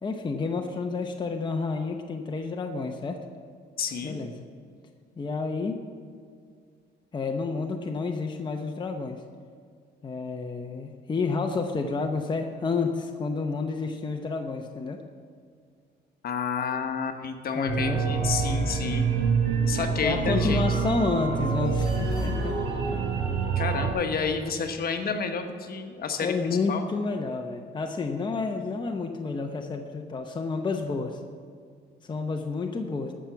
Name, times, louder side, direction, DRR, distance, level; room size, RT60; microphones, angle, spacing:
voice 1, 0.0-3.2 4.0-4.5 5.2-5.8 7.1-9.2 10.0-15.0 17.5-18.0 20.0-22.6 22.9-23.0 26.2-31.2 32.0-33.1, left 4 dB, 25° left, 3 dB, 0.8 m, -30 dB
voice 2, 3.8-4.2 16.2-19.1 19.7-20.6 23.6-26.8, left 5 dB, 55° left, 5 dB, 1.2 m, -30 dB
sound 1, 17.7-23.9, right 5 dB, 75° right, 3.1 m, -26 dB
14.0 x 5.9 x 6.9 m, 2.2 s
cardioid pair, 105°, 19 cm